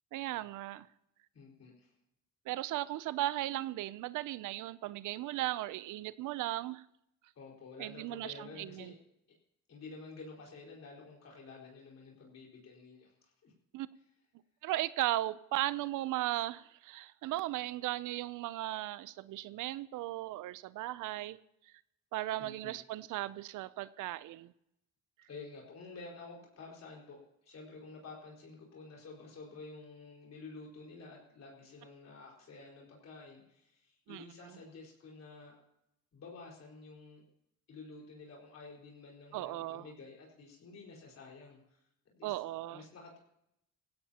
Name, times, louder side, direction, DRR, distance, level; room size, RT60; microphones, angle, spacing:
voice 1, 0.1-0.9 2.5-6.8 7.8-8.9 13.7-13.9 14.6-21.4 22.1-24.5 34.1-34.6 39.3-39.9 42.2-42.8, right 15 dB, 85° right, 17 dB, 0.5 m, -37 dB
voice 2, 1.3-1.9 7.3-9.0 9.7-13.5 22.4-22.7 25.3-35.6 36.1-37.2 37.7-41.8 42.1-42.4 42.7-43.2, left 3 dB, 60° left, -1 dB, 4.7 m, -51 dB
17.5 x 16.5 x 2.9 m, 0.80 s
cardioid pair, 90°, 30 cm